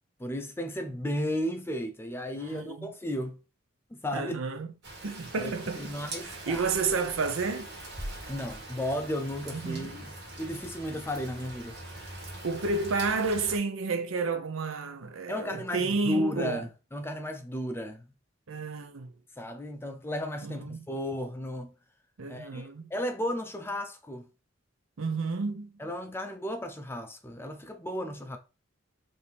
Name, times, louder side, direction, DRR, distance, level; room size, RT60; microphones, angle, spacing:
voice 1, 0.2-3.4 3.9-4.4 5.3-6.7 8.3-10.1 10.4-11.8 15.3-18.0 19.4-21.7 22.3-24.3 25.8-28.4, left 1 dB, 10° left, 0.4 m, -34 dB
voice 2, 2.3-2.9 4.1-4.7 5.0-5.9 6.2-7.7 9.5-9.9 12.4-16.6 18.5-19.1 20.4-20.8 22.2-22.9 25.0-25.7, right 4 dB, 80° right, 0.6 m, -31 dB
Rain, 4.8-13.6, right 2 dB, 55° right, 1.6 m, -42 dB
4.5 x 2.7 x 3.4 m
head